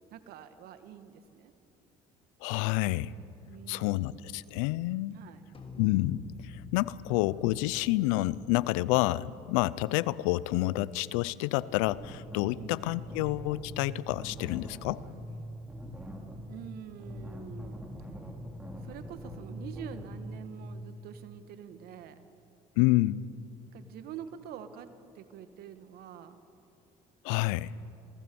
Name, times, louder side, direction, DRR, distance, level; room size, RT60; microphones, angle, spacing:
voice 1, 0.1-1.5 3.5-4.2 5.1-5.4 12.5-12.9 16.5-17.9 18.8-22.2 23.7-24.9 25.2-26.4, right 9 dB, 70° right, 10 dB, 1.6 m, -46 dB
voice 2, 2.4-3.1 3.7-5.2 5.8-15.0 22.8-23.3 27.2-27.7, left 18 dB, 85° left, 20 dB, 0.6 m, -29 dB
sound 1, 5.5-10.1, left 5 dB, 35° left, 3.5 m, -49 dB
sound 2, 11.7-20.6, equal, 10° right, 4.4 m, -43 dB
27.0 x 18.5 x 7.0 m, 2.7 s
supercardioid pair, 80°, 17 cm